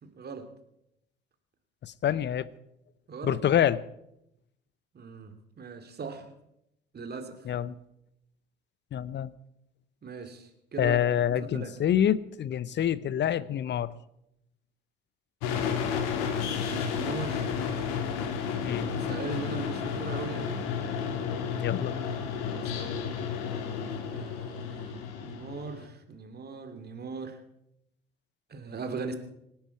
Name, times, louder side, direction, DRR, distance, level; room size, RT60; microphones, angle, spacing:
voice 1, 0.0-0.5 3.1-3.6 4.9-6.3 6.9-7.5 10.0-11.0 11.3-11.7 16.3-17.6 18.7-20.7 22.5-23.0 24.1-27.4 28.5-29.1, right 4 dB, 35° right, 7 dB, 2.7 m, -40 dB
voice 2, 1.8-2.5 3.2-3.8 7.4-7.8 8.9-9.3 10.8-13.9 18.6-18.9 21.6-22.0, left 10 dB, 40° left, 20 dB, 0.8 m, -27 dB
sound 1, 15.4-25.8, left 7 dB, 65° left, 2.3 m, -32 dB
26.0 x 10.5 x 4.7 m, 0.82 s
figure-of-eight pair, 55°, 29 cm